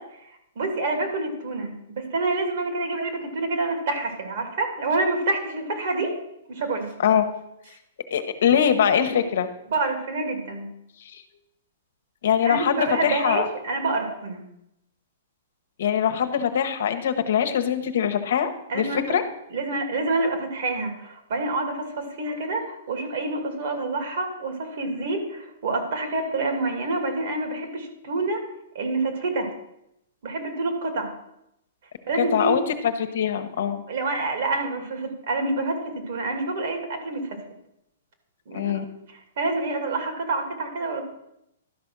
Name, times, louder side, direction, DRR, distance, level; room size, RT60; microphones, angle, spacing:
voice 1, 0.6-6.2 6.5-6.9 9.7-10.7 12.4-14.4 18.7-19.2 19.5-28.4 28.7-29.5 30.2-31.1 32.1-32.6 33.9-37.4 38.5-38.8 39.1-41.0, right 2 dB, 60° right, 4 dB, 2.5 m, -27 dB
voice 2, 8.1-9.5 11.1-11.2 12.2-13.5 15.8-18.5 18.7-19.2 32.2-33.8 38.5-38.8, left 8 dB, 65° left, 7 dB, 1.1 m, -22 dB
12.0 x 5.3 x 6.1 m, 0.82 s
hypercardioid pair, 155°, 0 cm